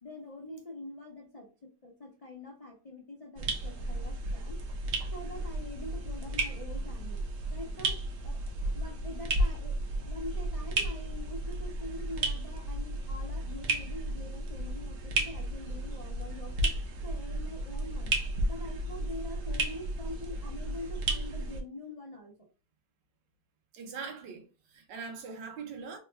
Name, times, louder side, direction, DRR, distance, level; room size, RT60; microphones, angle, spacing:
voice 1, 0.0-4.6 5.1-7.2 7.5-8.0 8.2-8.4 8.7-9.8 10.0-16.7 17.0-18.2 18.5-22.3, left 1 dB, 70° left, 0.3 m, -44 dB
sound 1, 3.4-21.6, right 2 dB, 60° right, 0.9 m, -33 dB
voice 2, 23.7-26.0, right 5 dB, 75° right, 1.5 m, -42 dB
3.7 x 2.2 x 3.1 m
omnidirectional pair, 2.0 m